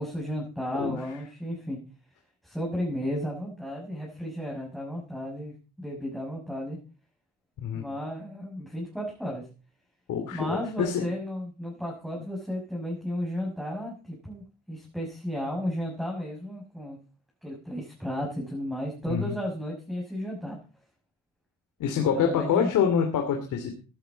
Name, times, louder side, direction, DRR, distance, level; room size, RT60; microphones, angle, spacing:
voice 1, 0.0-1.8 2.4-6.8 7.7-9.4 10.3-17.0 17.4-20.6 22.1-22.7, equal, ahead, -2 dB, 6.2 m, -33 dB
voice 2, 10.1-11.0 19.1-19.4 21.8-23.7, left 7 dB, 80° left, 3 dB, 2.8 m, -26 dB
16.0 x 11.0 x 4.1 m, 0.35 s
cardioid pair, 90°, 30 cm